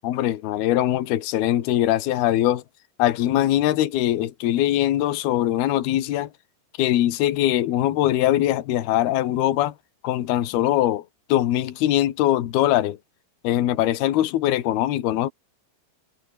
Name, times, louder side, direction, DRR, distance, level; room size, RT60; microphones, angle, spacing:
voice 1, 0.0-2.6 3.0-6.3 6.8-9.7 10.0-11.0 11.3-13.0 13.4-15.3, left 13 dB, 65° left, 3.4 m, -22 dB
omnidirectional pair, 5.4 m